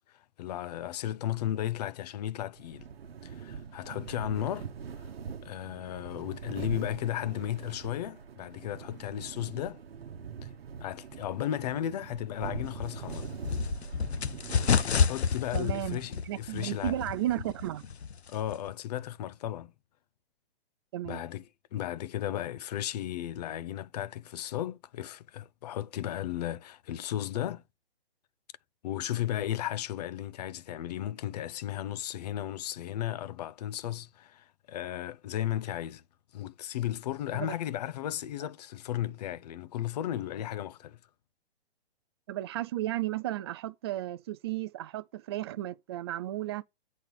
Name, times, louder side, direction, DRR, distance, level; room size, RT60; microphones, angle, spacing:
voice 1, 0.1-2.9 3.2-4.7 5.4-9.8 10.4-10.5 10.8-13.3 15.0-17.0 18.3-19.7 21.1-21.4 21.7-27.6 28.8-36.0 36.3-41.0, left 12 dB, 40° left, 0.6 m, -35 dB
sound 1, 2.6-15.3, right 6 dB, 65° right, 1.0 m, -43 dB
sound 2, 12.6-18.7, left 6 dB, 85° left, 0.7 m, -30 dB
voice 2, 15.5-17.9 20.9-21.2 37.3-37.5 42.3-46.6, right 14 dB, 25° right, 0.4 m, -34 dB
8.8 x 4.2 x 6.7 m
figure-of-eight pair, 130°, 32 cm